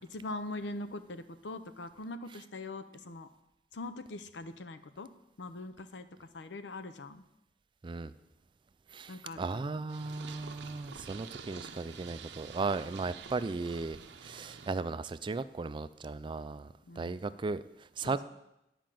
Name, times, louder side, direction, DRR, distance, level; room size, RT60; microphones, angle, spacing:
voice 1, 0.0-3.3 3.7-5.1 5.4-7.2 9.1-9.8 16.9-17.2 18.0-18.2, left 2 dB, 90° left, 11 dB, 0.7 m, -42 dB
voice 2, 8.9-18.2, right 3 dB, 30° right, 14 dB, 0.3 m, -36 dB
Purr, 9.9-14.8, right 6 dB, 75° right, 0.7 m, -48 dB
10.5 x 5.0 x 7.5 m, 0.88 s
head